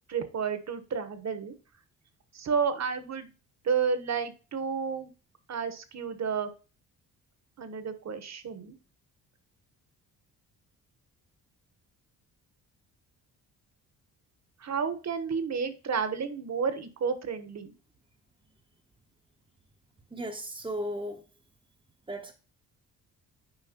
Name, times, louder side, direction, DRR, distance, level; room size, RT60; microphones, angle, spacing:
voice 1, 0.1-1.5 2.3-3.3 3.6-5.1 5.5-6.5 7.6-8.8 14.6-17.7, right 6 dB, 45° right, 1.1 m, -31 dB
voice 2, 20.1-21.3 22.1-22.3, equal, 15° right, 0.8 m, -36 dB
9.9 x 4.7 x 2.9 m
cardioid pair, 80°, 36 cm